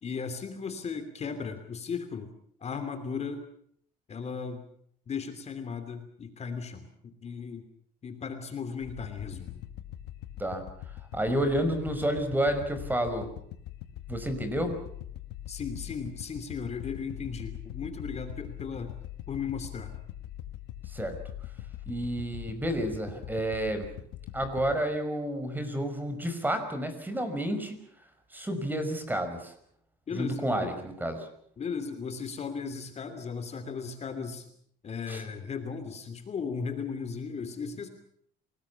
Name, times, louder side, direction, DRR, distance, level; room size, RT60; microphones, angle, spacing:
voice 1, 0.0-2.3 2.6-3.5 4.1-4.6 5.1-7.6 8.0-9.6 15.5-19.0 19.3-19.9 30.1-30.7 31.6-34.5 34.8-37.9, left 5 dB, 40° left, 8 dB, 2.9 m, -36 dB
sound 1, 8.8-24.7, left 12 dB, 85° left, 1.9 m, -42 dB
voice 2, 11.1-13.3 14.1-14.7 20.9-21.1 21.9-23.9 24.3-27.8 28.3-29.5 30.1-31.3 35.1-35.2, right 1 dB, 10° right, 9 dB, 5.5 m, -30 dB
27.5 x 19.5 x 7.1 m, 0.65 s
cardioid pair, 110°, 17 cm